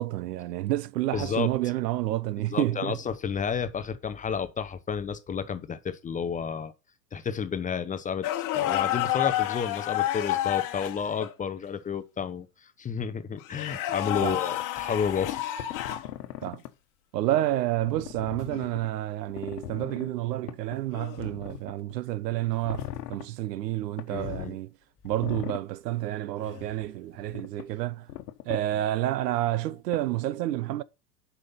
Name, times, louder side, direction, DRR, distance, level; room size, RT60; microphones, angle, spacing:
voice 1, 0.0-3.0 14.2-14.4 16.4-16.6 17.1-24.7 25.0-28.1 28.4-30.8, right 15 dB, 75° right, 0.8 m, -29 dB
voice 2, 1.1-1.5 2.5-6.7 7.1-8.3 8.5-15.4 24.1-24.6, left 6 dB, 15° left, 0.7 m, -31 dB
sound 1, 8.2-11.3 13.4-16.1 18.5-18.7 20.9-21.3 24.2-24.4 26.4-26.7, left 14 dB, 40° left, 1.3 m, -30 dB
sound 2, 15.2-16.7 17.7-18.9 19.3-20.1 20.5-20.8 21.2-21.9 22.6-23.3 24.0-24.5 25.0-25.6 27.1-27.7 28.1-28.6 29.9-30.0, left 12 dB, 75° left, 1.2 m, -39 dB
7.7 x 5.6 x 5.6 m
hypercardioid pair, 105°, 49 cm